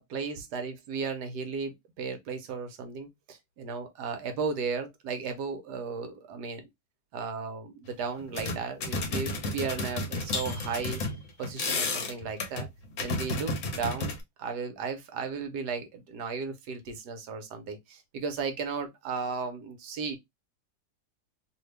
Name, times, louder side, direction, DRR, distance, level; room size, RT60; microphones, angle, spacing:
voice 1, 0.0-6.7 7.1-11.0 11.4-12.7 13.0-20.2, right 5 dB, 75° right, 1.2 m, -35 dB
sound 1, 7.8-7.9 8.2-14.2, left 3 dB, 55° left, 1.1 m, -32 dB
2.8 x 2.7 x 3.1 m
omnidirectional pair, 1.9 m